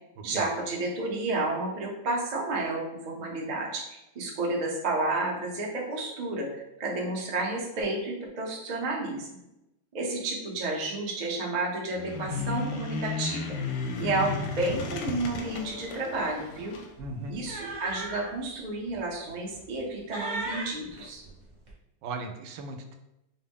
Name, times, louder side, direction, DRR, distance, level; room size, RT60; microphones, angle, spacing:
voice 1, 0.2-9.4 9.9-13.6 14.0-16.7 17.3-21.2, right 2 dB, 60° right, -2 dB, 0.4 m, -31 dB
sound 1, 11.9-16.9, left 4 dB, 85° left, 1.3 m, -34 dB
sound 2, 15.2-15.4 15.7-15.9 17.0-18.4 18.9-19.0 19.5-19.9 20.1-21.7, right 2 dB, 35° right, 0.7 m, -37 dB
voice 2, 17.0-17.4 22.0-23.0, right 2 dB, 80° right, 5 dB, 1.2 m, -37 dB
5.4 x 2.0 x 3.5 m, 0.90 s
omnidirectional pair, 2.0 m